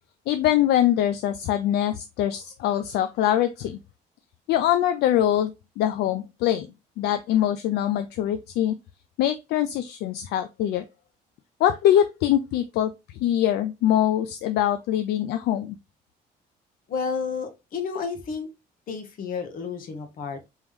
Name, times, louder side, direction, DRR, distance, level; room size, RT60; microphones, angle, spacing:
voice 1, 0.3-3.8 4.5-6.7 7.0-8.7 9.2-10.8 11.6-12.9 13.2-15.8, left 11 dB, 75° left, 0.4 m, -23 dB
voice 2, 16.9-18.5 18.9-20.5, left 5 dB, 55° left, 1.0 m, -31 dB
3.6 x 3.0 x 3.4 m
cardioid pair, 110°, 17 cm